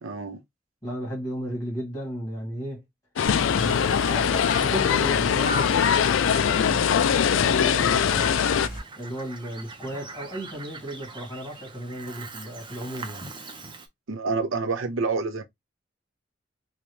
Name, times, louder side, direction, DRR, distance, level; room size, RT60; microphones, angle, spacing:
voice 1, 0.0-0.4 14.1-15.4, right 4 dB, 85° right, 0.7 m, -28 dB
voice 2, 0.8-2.8 3.5-8.4 9.0-13.3, equal, 20° left, 1.9 m, -35 dB
sound 1, 3.2-8.7, left 8 dB, 70° left, 0.3 m, -22 dB
Bird vocalization bird call bird song, 3.2-13.9, right 2 dB, 25° right, 0.6 m, -40 dB
sound 2, 3.3-8.8, equal, 40° left, 1.8 m, -36 dB
4.0 x 2.3 x 3.1 m
head